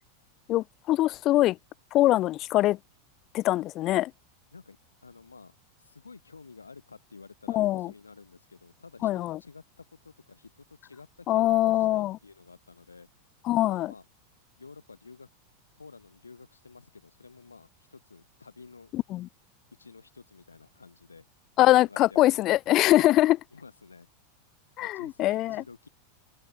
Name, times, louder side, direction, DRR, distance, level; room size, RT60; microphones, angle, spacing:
voice 1, 0.5-1.6 1.9-2.8 3.3-4.1 7.5-7.9 9.0-9.4 11.3-12.2 13.5-13.9 18.9-19.3 21.6-23.4 24.8-25.6, left 15 dB, 40° left, 0.4 m, -23 dB
voice 2, 5.0-13.1 13.6-14.1 14.6-15.3 15.8-18.9 19.8-21.2 21.7-22.6 23.5-24.1 24.8-25.9, left 4 dB, 90° left, 7.7 m, -51 dB
figure-of-eight pair, 90°, 0 cm